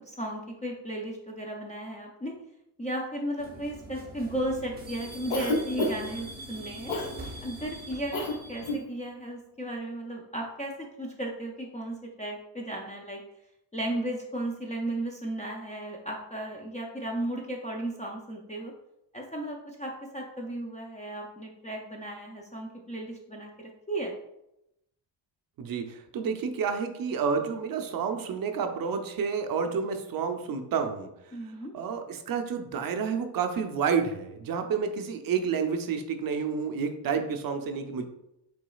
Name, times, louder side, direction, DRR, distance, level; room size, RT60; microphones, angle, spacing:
voice 1, 0.0-2.3 2.8-6.9 7.4-13.2 13.7-18.7 19.1-24.2 31.3-31.7, right 1 dB, 20° left, -1 dB, 0.3 m, -35 dB
sound 1, 3.4-8.8, right 1 dB, 20° right, 0.8 m, -43 dB
Cough, 5.3-6.2 6.9-7.1 8.1-8.3 8.6-8.8, left 2 dB, 85° left, 1.4 m, -28 dB
voice 2, 25.6-31.4 31.7-38.0, right 6 dB, 50° right, 6 dB, 0.5 m, -30 dB
5.9 x 3.9 x 2.3 m, 0.85 s
cardioid pair, 175°, 45 cm